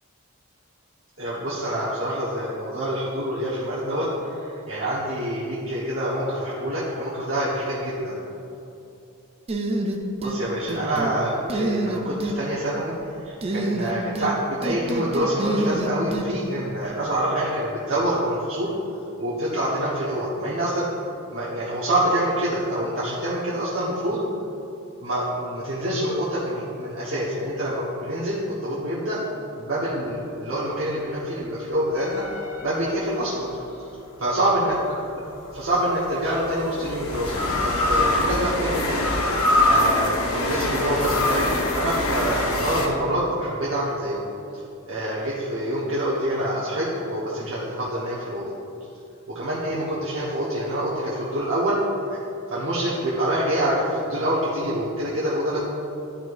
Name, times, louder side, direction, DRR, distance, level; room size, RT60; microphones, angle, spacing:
voice 1, 1.2-4.1 4.4-8.2 10.2-12.9 13.2-18.7 19.2-20.9 21.3-24.2 25.0-29.2 29.5-32.2 32.6-33.5 34.2-34.8 35.1-35.2 35.5-39.0 39.6-41.5 41.7-44.2 44.9-48.4 49.3-51.8 52.1-52.2 52.5-55.6, right 1 dB, 60° right, -9 dB, 1.2 m, -26 dB
sound 1, 9.5-10.4 10.7-11.1 11.5-12.4 13.4-14.3 14.6-16.3, right 2 dB, 25° right, 0.4 m, -27 dB
sound 2, 32.0-33.5 35.3-42.9, left 1 dB, 75° left, 0.8 m, -24 dB
11.5 x 4.8 x 2.5 m, 2.7 s
head